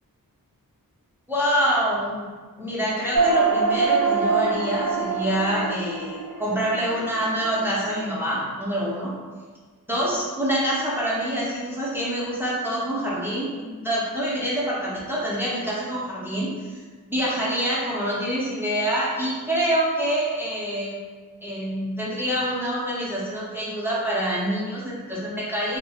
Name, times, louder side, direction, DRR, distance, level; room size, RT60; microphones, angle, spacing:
voice 1, 1.3-2.3 2.6-9.2 9.9-16.8 17.1-21.0 21.4-25.8, equal, 5° right, -7 dB, 0.6 m, -26 dB
sound 1, 3.1-7.9, right 5 dB, 70° right, 0.5 m, -24 dB
2.3 x 2.1 x 2.9 m, 1.5 s
wide cardioid pair, 55°, 36 cm